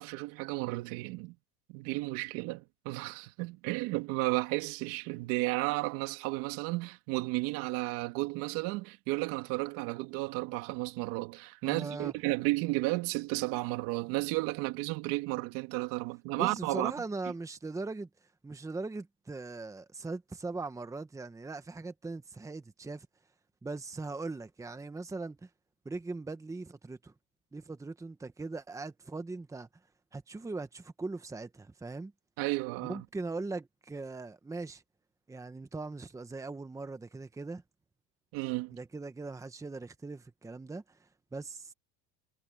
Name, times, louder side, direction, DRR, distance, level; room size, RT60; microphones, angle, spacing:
voice 1, 0.0-1.4 1.7-16.9 32.4-33.0 38.3-38.8, right 22 dB, 70° right, 2.9 m, -33 dB
voice 2, 11.6-12.1 16.4-18.1 18.4-23.1 23.6-25.5 25.8-27.1 27.5-29.7 30.1-32.1 32.8-34.8 35.3-37.6 38.7-41.7, right 3 dB, 10° right, 1.2 m, -40 dB
supercardioid pair, 135°, 36 cm